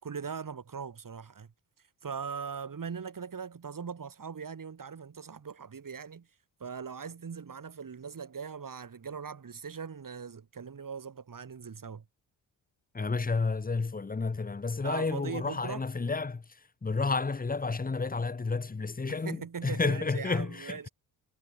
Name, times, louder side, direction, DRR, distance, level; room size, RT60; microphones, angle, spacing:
voice 1, 0.0-1.5 1.8-6.3 6.6-12.0 14.8-15.8 19.1-20.9, right 6 dB, 45° right, 5.6 m, -40 dB
voice 2, 12.9-20.9, left 4 dB, 20° left, 1.1 m, -31 dB
supercardioid pair, 55°, 44 cm